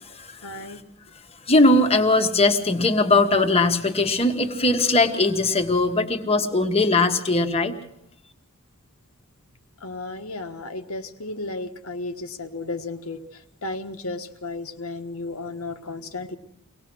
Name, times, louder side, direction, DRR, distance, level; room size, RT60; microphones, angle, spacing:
voice 1, 0.4-0.8 9.8-16.4, left 2 dB, 80° left, 1.4 m, -34 dB
voice 2, 1.5-7.7, left 2 dB, 30° left, 1.5 m, -20 dB
23.5 x 18.0 x 6.2 m
head